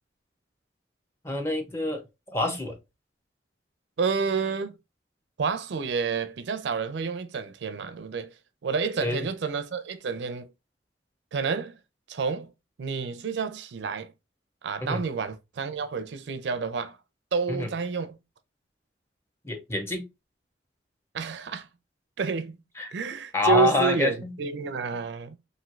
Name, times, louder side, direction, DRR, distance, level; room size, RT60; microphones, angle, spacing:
voice 1, 1.2-2.0 2.3-2.8 9.0-9.3 14.8-15.0 17.5-17.7 19.4-20.0 22.8-22.9 23.3-24.3, left 2 dB, 15° left, 0.6 m, -26 dB
voice 2, 4.0-4.7 5.4-8.3 8.6-10.5 11.3-11.7 12.1-12.5 12.8-14.1 14.6-17.0 17.3-18.2 21.1-21.7 22.2-22.6 22.9-25.4, right 5 dB, 75° right, 0.4 m, -29 dB
3.1 x 2.6 x 2.4 m
head